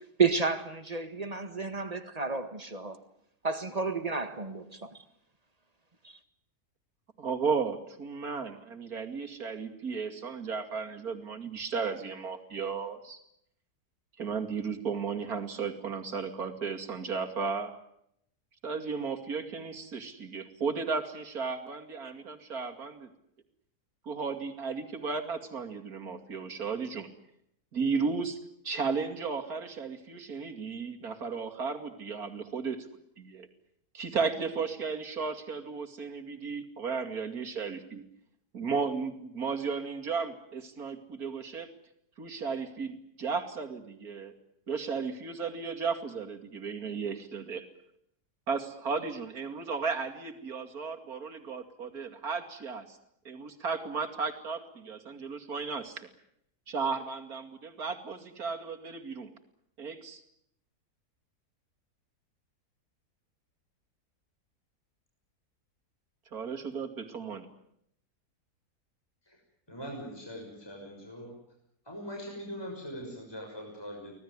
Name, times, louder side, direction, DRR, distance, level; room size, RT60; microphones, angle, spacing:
voice 1, 0.2-3.0 3.4-5.0, right 5 dB, 25° right, 1.8 m, -31 dB
voice 2, 7.2-13.2 14.2-17.7 18.6-23.1 24.1-27.1 27.7-28.4 28.6-32.9 33.2-33.5 33.9-38.0 38.5-41.7 42.2-44.3 44.7-47.7 48.5-53.0 53.2-56.1 56.7-59.3 59.8-60.2 66.3-67.5, right 5 dB, 65° right, 2.9 m, -34 dB
voice 3, 69.7-71.3 71.9-74.1, equal, 15° left, 6.2 m, -41 dB
25.0 x 18.5 x 9.6 m
omnidirectional pair, 1.7 m